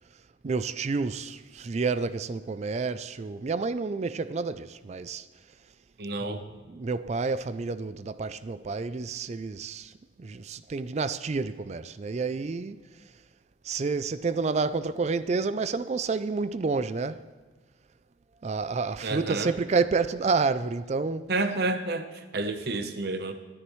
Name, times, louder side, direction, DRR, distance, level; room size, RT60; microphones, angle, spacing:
voice 1, 0.4-5.3 6.2-9.9 10.2-12.8 13.6-17.2 18.4-21.3, right 4 dB, 35° right, 0.4 m, -29 dB
voice 2, 6.0-6.4 19.0-19.5 21.3-22.1 22.3-23.3, right 2 dB, 60° right, 0.8 m, -29 dB
22.5 x 9.9 x 3.1 m
head